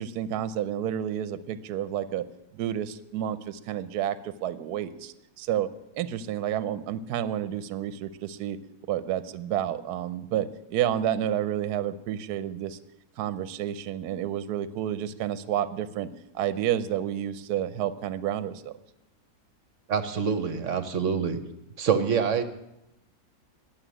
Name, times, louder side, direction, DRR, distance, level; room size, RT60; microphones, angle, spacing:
voice 1, 0.0-2.3 2.5-5.7 5.9-8.6 8.9-12.8 13.2-16.1 16.3-18.7, right 10 dB, 75° right, 14 dB, 1.2 m, -30 dB
voice 2, 19.9-21.4 21.8-22.4, right 6 dB, 55° right, 10 dB, 1.1 m, -26 dB
11.0 x 7.6 x 10.0 m, 0.89 s
omnidirectional pair, 1.8 m